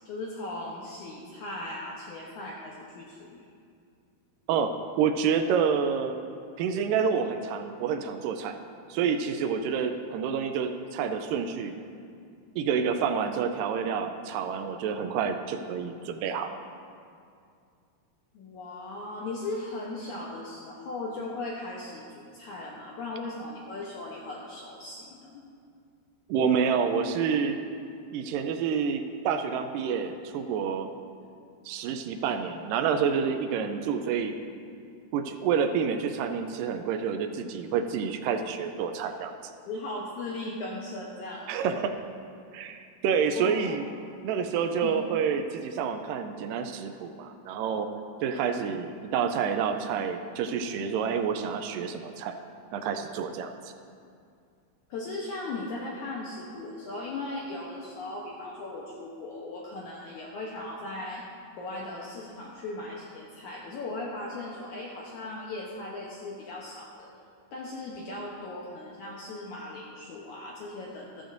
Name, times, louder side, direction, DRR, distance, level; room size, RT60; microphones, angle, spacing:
voice 1, 0.1-3.5 18.3-25.4 39.7-41.8 43.4-43.8 44.2-44.3 44.8-45.0 49.6-49.7 54.9-61.2 61.5-67.1 67.5-71.2, left 2 dB, 75° left, -3 dB, 1.8 m, -38 dB
voice 2, 4.5-6.1 6.6-8.6 8.9-11.7 12.6-16.5 26.3-27.6 28.1-30.9 31.7-34.3 35.1-39.3 41.5-41.9 42.5-43.9 44.2-47.9 48.2-52.4 52.7-53.7, right 6 dB, 90° right, 6 dB, 1.9 m, -28 dB
13.5 x 13.5 x 2.6 m, 2.4 s
omnidirectional pair, 4.5 m